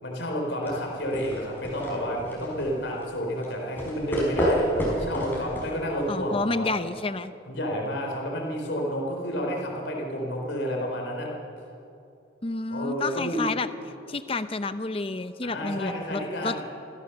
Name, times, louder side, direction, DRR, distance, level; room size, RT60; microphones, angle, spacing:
voice 1, 0.0-6.7 7.5-11.3 12.7-13.4 15.4-16.6, equal, 70° left, -1 dB, 3.7 m, -30 dB
sound 1, 0.6-6.3, equal, 10° left, 5.1 m, -30 dB
voice 2, 6.1-7.3 12.4-13.7 14.1-16.6, left 3 dB, 30° left, 12 dB, 0.7 m, -30 dB
25.5 x 15.0 x 6.9 m, 2.7 s
head